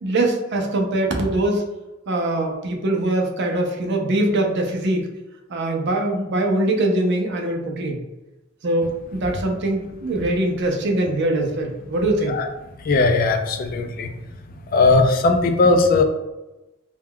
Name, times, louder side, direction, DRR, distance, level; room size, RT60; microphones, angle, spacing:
voice 1, 0.0-1.6 2.1-5.1 5.5-8.0 8.6-12.4, right 1 dB, 60° right, 2 dB, 0.5 m, -22 dB
voice 2, 12.9-14.1 14.7-16.0, left 3 dB, 45° left, 5 dB, 0.3 m, -18 dB
3.5 x 2.2 x 2.2 m, 1.0 s
head